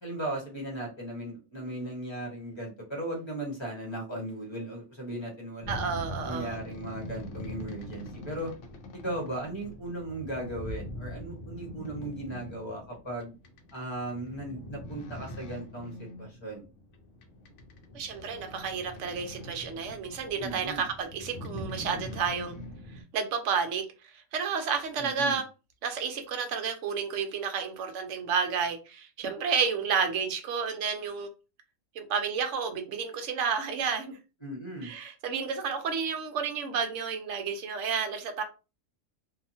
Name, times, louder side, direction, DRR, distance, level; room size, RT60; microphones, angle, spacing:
voice 1, 0.0-5.9 6.2-8.5 8.9-13.3 13.7-16.7 20.4-20.8 25.0-25.4 34.4-34.9, right 1 dB, 25° left, 0.9 m, -37 dB
sound 1, 5.6-23.0, left 1 dB, 70° left, 0.9 m, -42 dB
voice 2, 5.7-6.6 17.9-22.6 23.1-23.8 24.1-25.4 25.8-31.3 31.9-34.2 34.8-38.4, right 6 dB, 70° right, 0.9 m, -31 dB
2.8 x 2.4 x 2.6 m
omnidirectional pair, 1.4 m